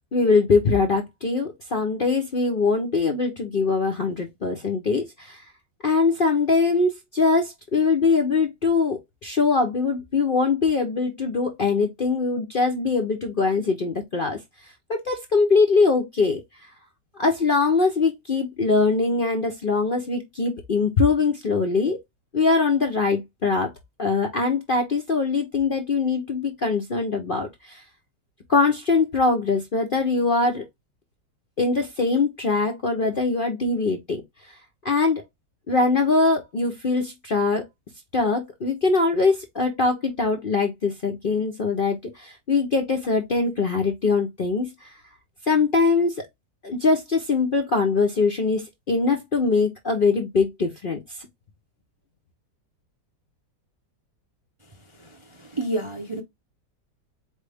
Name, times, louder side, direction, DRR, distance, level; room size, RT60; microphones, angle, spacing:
voice 1, 0.1-5.4 5.8-16.7 17.2-22.0 22.3-23.7 24.0-27.8 28.5-30.6 31.6-34.6 34.8-35.2 35.7-37.7 38.1-45.0 45.4-46.2 46.6-51.3, left 4 dB, 55° left, 0.6 m, -22 dB
voice 2, 54.9-56.2, right 2 dB, 50° right, 0.3 m, -30 dB
4.5 x 3.1 x 3.4 m
omnidirectional pair, 1.8 m